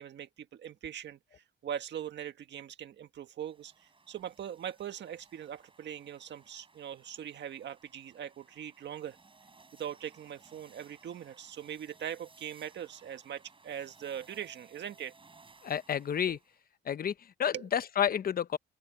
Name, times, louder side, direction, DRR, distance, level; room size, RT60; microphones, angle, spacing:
voice 1, 0.0-9.2 9.8-15.1 16.3-16.4 17.5-17.6, right 9 dB, 60° right, 1.7 m, -41 dB
sound 1, 3.4-16.6, right 3 dB, 25° right, 7.3 m, -61 dB
voice 2, 15.6-16.4 16.8-18.6, left 9 dB, 50° left, 0.9 m, -30 dB
open air
cardioid pair, 90°, 20 cm